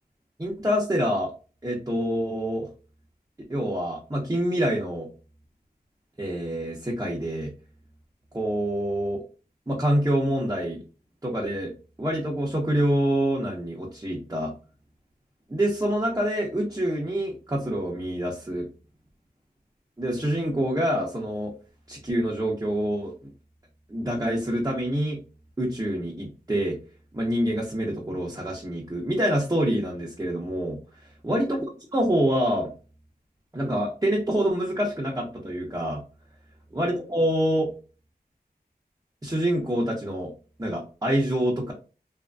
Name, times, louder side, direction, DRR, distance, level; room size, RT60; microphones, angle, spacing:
voice 1, 0.4-1.3 1.6-2.7 3.5-5.1 6.2-7.5 8.3-9.2 9.7-10.8 11.2-11.7 12.0-14.5 15.5-18.7 20.0-21.5 21.9-23.3 23.9-25.2 25.6-26.8 27.1-30.8 31.2-31.6 31.9-32.7 33.5-36.0 36.7-37.7 39.2-40.3 40.6-41.7, equal, 20° right, -3 dB, 0.8 m, -26 dB
2.8 x 2.5 x 2.3 m, 0.34 s
wide cardioid pair, 45°, 17 cm